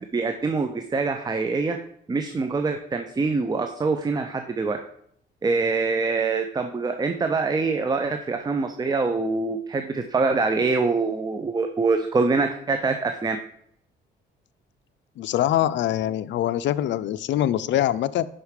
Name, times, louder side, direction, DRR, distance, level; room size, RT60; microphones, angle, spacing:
voice 1, 0.1-1.8 2.1-4.8 5.4-13.4, right 4 dB, 20° right, 6 dB, 0.5 m, -24 dB
voice 2, 15.2-18.3, left 12 dB, 65° left, 15 dB, 0.4 m, -24 dB
5.6 x 5.0 x 4.8 m, 0.68 s
cardioid pair, 90°, 20 cm